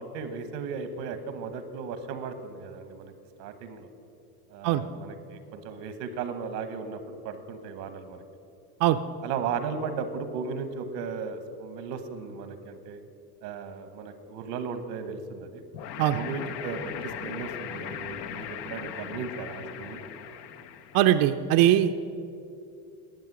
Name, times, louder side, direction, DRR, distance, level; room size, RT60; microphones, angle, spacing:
voice 1, 0.0-3.1 3.4-3.9 4.5-8.2 9.2-13.0 13.4-15.6 16.1-20.0, right 5 dB, 80° right, 9 dB, 1.2 m, -36 dB
sound 1, 15.7-21.2, left 9 dB, 85° left, 0.8 m, -39 dB
voice 2, 20.9-22.0, right 12 dB, 50° right, 8 dB, 0.5 m, -21 dB
10.5 x 7.5 x 6.0 m, 2.6 s
supercardioid pair, 95°, 48 cm